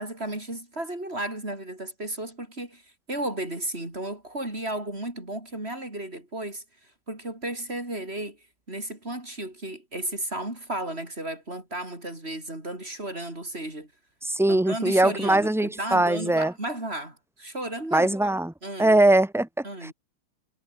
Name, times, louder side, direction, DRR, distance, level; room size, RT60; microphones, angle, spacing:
voice 1, 0.0-2.8 3.1-6.6 7.1-8.4 8.7-13.9 14.5-18.3 18.6-19.0 19.6-19.9, right 1 dB, 25° right, 6.0 m, -34 dB
voice 2, 14.2-16.5 17.9-18.5 18.8-19.9, right 1 dB, ahead, 1.1 m, -21 dB
omnidirectional pair, 2.3 m